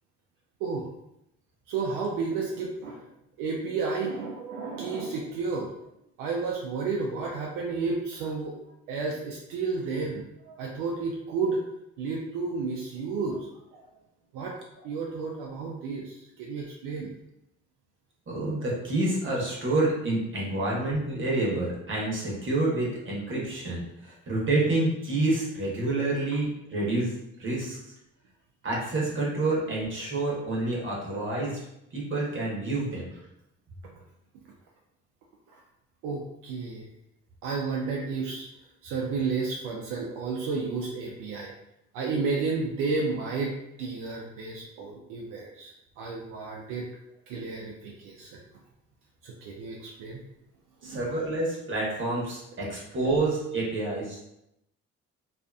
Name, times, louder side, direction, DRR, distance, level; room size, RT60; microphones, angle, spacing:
voice 1, 1.7-3.0 3.4-5.7 6.2-8.5 8.9-11.6 12.0-13.5 13.7-13.8 14.3-14.6 14.8-17.1 35.5-35.6 36.0-36.9 37.4-38.5 38.8-41.5 41.9-46.9 47.3-48.4 49.2-50.2 50.8-51.0 53.0-53.1, right 4 dB, 85° right, -2 dB, 0.5 m, -32 dB
voice 2, 18.3-27.1 27.4-27.8 28.6-31.6 31.9-33.1 50.8-54.3, right 2 dB, 40° right, -4 dB, 1.0 m, -28 dB
2.5 x 2.4 x 2.2 m, 0.83 s
supercardioid pair, 65°, 31 cm